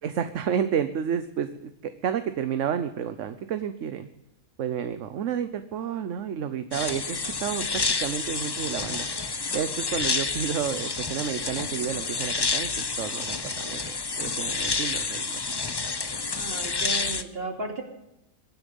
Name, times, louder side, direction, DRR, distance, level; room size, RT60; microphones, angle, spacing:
voice 1, 0.0-4.1 4.6-7.6 8.0-9.1 9.5-15.6, right 8 dB, 60° right, 10 dB, 1.1 m, -31 dB
sound 1, 6.7-17.2, left 4 dB, 35° left, 0.4 m, -29 dB
voice 2, 16.3-17.8, right 2 dB, 40° right, 3 dB, 2.9 m, -34 dB
23.0 x 10.0 x 5.3 m, 0.84 s
omnidirectional pair, 1.5 m